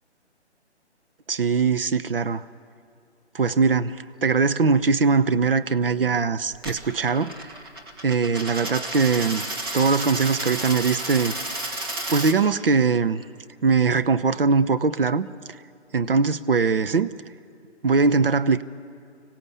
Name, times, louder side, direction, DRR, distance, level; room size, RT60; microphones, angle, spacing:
voice 1, 1.3-2.4 3.3-7.3 8.0-9.4 9.7-11.4 12.1-13.2 13.6-15.3 15.9-17.1 17.8-18.6, right 4 dB, 55° right, 13 dB, 0.8 m, -21 dB
Coin (dropping), 6.5-12.4, right 1 dB, 20° right, 1.5 m, -32 dB
26.0 x 16.5 x 8.4 m, 2.5 s
figure-of-eight pair, 165°, 35 cm